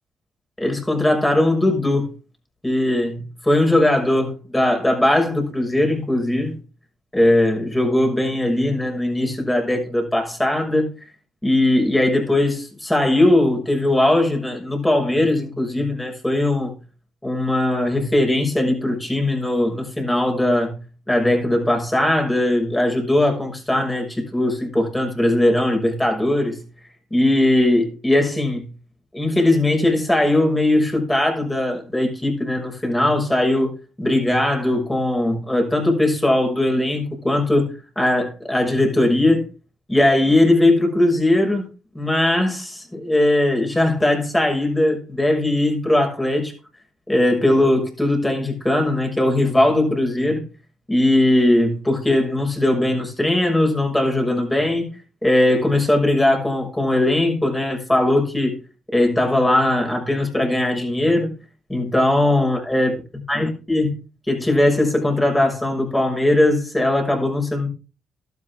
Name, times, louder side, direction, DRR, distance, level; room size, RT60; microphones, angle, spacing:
voice 1, 0.6-2.1 2.6-6.6 7.1-10.9 11.4-16.7 17.2-20.7 21.1-26.6 27.1-28.7 29.1-33.7 34.0-39.5 39.9-41.7 41.9-46.5 47.1-50.4 50.9-54.9 55.2-58.6 58.9-61.3 61.7-62.9 63.3-63.9 64.3-67.7, left 1 dB, 10° left, 6.2 m, -19 dB
13.5 x 12.5 x 3.7 m
cardioid pair, 90°, 0 cm